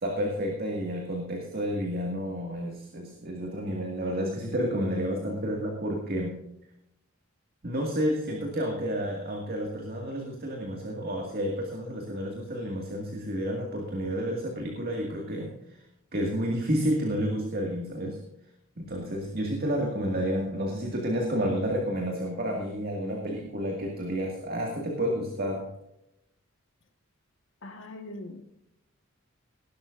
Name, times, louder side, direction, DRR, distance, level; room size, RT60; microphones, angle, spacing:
voice 1, 0.0-6.4 7.6-15.8 16.1-18.2 18.8-25.7, equal, 45° right, 0 dB, 2.1 m, -30 dB
voice 2, 27.6-28.4, left 2 dB, 60° left, 5 dB, 1.7 m, -41 dB
19.5 x 11.5 x 2.6 m, 0.82 s
head